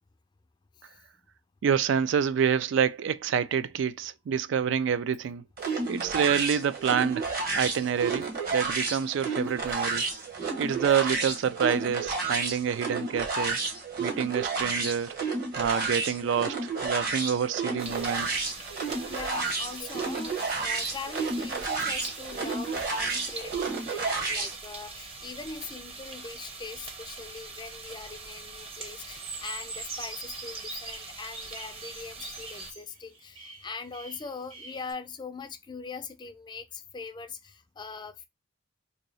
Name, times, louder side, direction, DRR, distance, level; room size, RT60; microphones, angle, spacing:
voice 1, 1.6-5.4 5.9-10.1 10.6-13.6 14.0-15.2 15.6-18.5, right 7 dB, 60° right, 0.3 m, -27 dB
sound 1, 5.6-24.6, right 4 dB, 45° right, 1.1 m, -31 dB
sound 2, 17.8-32.7, right 3 dB, 30° right, 0.7 m, -43 dB
voice 2, 19.0-38.2, left 4 dB, 20° left, 0.4 m, -41 dB
sound 3, 28.7-34.9, right 3 dB, 85° right, 1.1 m, -42 dB
2.9 x 2.7 x 3.9 m
head